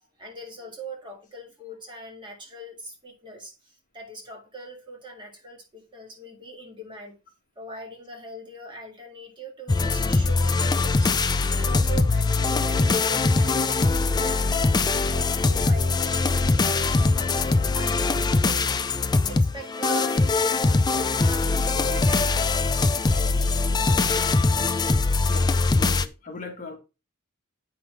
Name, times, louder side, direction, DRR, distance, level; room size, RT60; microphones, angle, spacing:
voice 1, 0.2-7.2 7.6-11.1 11.6-19.0 19.2-22.6 23.1-24.4, equal, 20° right, 2.0 m, -41 dB
sound 1, 9.7-26.1, left 3 dB, 20° left, 0.4 m, -22 dB
voice 2, 25.3-26.8, left 3 dB, 35° left, 1.5 m, -39 dB
8.5 x 5.7 x 3.2 m
head